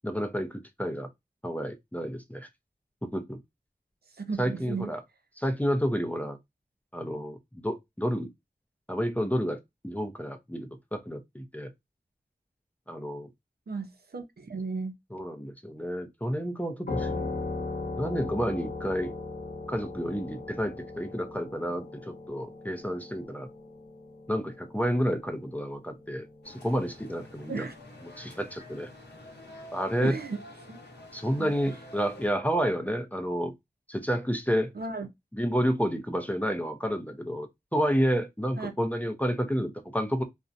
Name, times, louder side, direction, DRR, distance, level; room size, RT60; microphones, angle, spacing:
voice 1, 0.0-1.1 1.4-2.5 3.0-3.4 4.4-5.0 5.4-6.4 6.9-8.3 8.9-11.7 12.9-13.3 15.1-17.3 18.0-19.1 19.7-23.5 24.3-27.6 28.2-28.9 29.7-30.2 31.1-33.5 33.9-34.7 35.3-40.2, equal, 10° left, 0.5 m, -30 dB
voice 2, 4.1-4.9 13.7-14.9 27.5-27.7 30.0-30.4 30.7-30.8 31.4-31.8 34.7-35.1 38.6-38.7, right 4 dB, 65° right, 0.6 m, -35 dB
sound 1, 16.9-26.1, left 3 dB, 60° left, 0.8 m, -38 dB
sound 2, 26.4-32.3, left 1 dB, 85° left, 0.8 m, -48 dB
2.5 x 2.1 x 2.5 m
wide cardioid pair, 45°, 17 cm